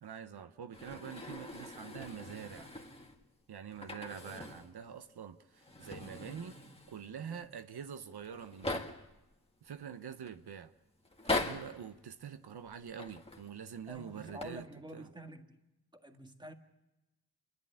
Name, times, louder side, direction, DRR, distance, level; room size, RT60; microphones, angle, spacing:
voice 1, 0.0-2.7 3.5-6.6 6.9-8.8 9.6-10.7 11.2-14.6 14.9-15.1, right 7 dB, 85° right, 0.9 m, -45 dB
sound 1, 0.7-3.2 3.7-4.8 5.0-5.1 5.6-7.1 7.8-7.9 8.1-9.2 9.8-10.3 11.0-11.8 12.9-13.5 14.2-14.4, left 2 dB, 15° left, 1.9 m, -41 dB
voice 2, 6.3-6.7 7.2-7.5 13.9-15.6 15.9-16.5, right 1 dB, 10° right, 1.8 m, -49 dB
28.0 x 11.0 x 8.7 m
cardioid pair, 65°, 37 cm